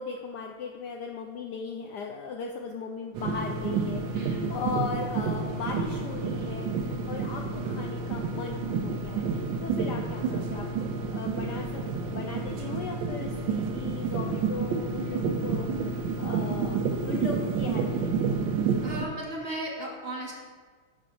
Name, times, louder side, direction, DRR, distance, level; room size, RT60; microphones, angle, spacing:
voice 1, 0.0-18.5, left 5 dB, 85° left, 1 dB, 0.9 m, -38 dB
sound 1, 3.1-19.1, right 5 dB, 70° right, 1.3 m, -30 dB
voice 2, 4.1-4.6 18.8-20.3, right 1 dB, 40° right, -3 dB, 0.9 m, -36 dB
6.8 x 4.3 x 6.3 m, 1.5 s
omnidirectional pair, 2.4 m